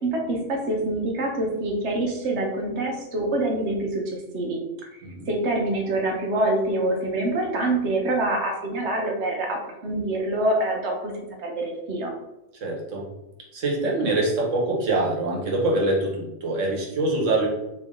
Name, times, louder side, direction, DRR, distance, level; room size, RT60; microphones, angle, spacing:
voice 1, 0.0-4.6 5.3-12.1, right 2 dB, 65° right, 1 dB, 1.1 m, -26 dB
voice 2, 12.6-13.0 13.5-17.5, right 2 dB, 90° right, -2 dB, 1.4 m, -24 dB
3.4 x 3.0 x 3.6 m, 0.95 s
omnidirectional pair, 1.3 m